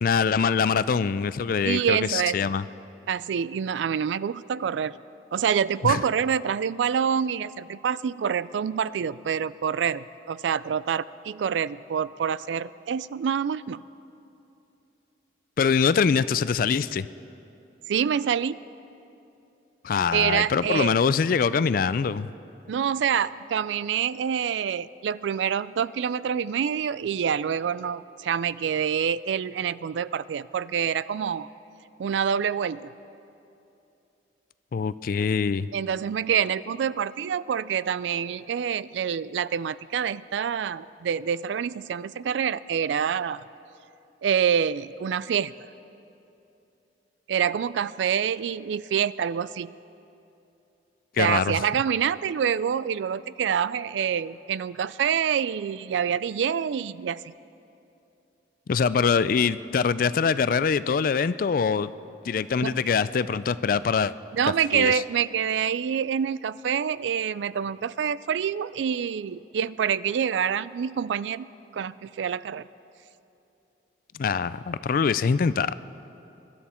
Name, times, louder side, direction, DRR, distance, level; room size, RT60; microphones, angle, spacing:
voice 1, 0.0-2.6 5.8-6.0 15.6-17.1 19.8-22.3 34.7-35.7 51.2-51.6 58.7-61.9 62.2-64.1 64.7-65.0 74.1-75.7, left 6 dB, 50° left, 16 dB, 0.3 m, -24 dB
voice 2, 1.6-2.4 3.1-4.9 5.3-13.8 17.9-18.6 20.1-21.0 22.7-31.5 32.0-32.9 35.7-43.4 44.2-45.5 47.3-49.7 51.2-57.3 62.6-62.8 64.3-71.5 71.7-72.7, right 8 dB, 85° right, 18 dB, 0.3 m, -26 dB
24.0 x 12.5 x 4.3 m, 2.8 s
head